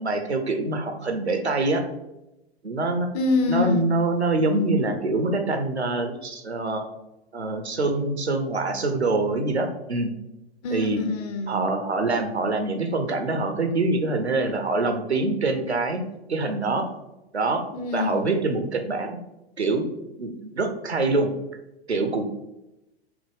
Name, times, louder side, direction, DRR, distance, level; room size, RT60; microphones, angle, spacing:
voice 1, 0.0-1.8 2.6-3.1 3.5-6.9 7.3-10.1 10.7-11.0 11.5-16.0 16.3-16.9 17.3-17.6 17.9-19.2 19.6-19.8 20.2-21.3 21.9-22.2, right 2 dB, 85° right, 5 dB, 0.7 m, -25 dB
voice 2, 3.1-3.8 10.6-11.7 17.7-18.3, left 3 dB, 40° left, 6 dB, 0.6 m, -25 dB
5.8 x 2.1 x 3.4 m, 0.92 s
figure-of-eight pair, 100°, 32 cm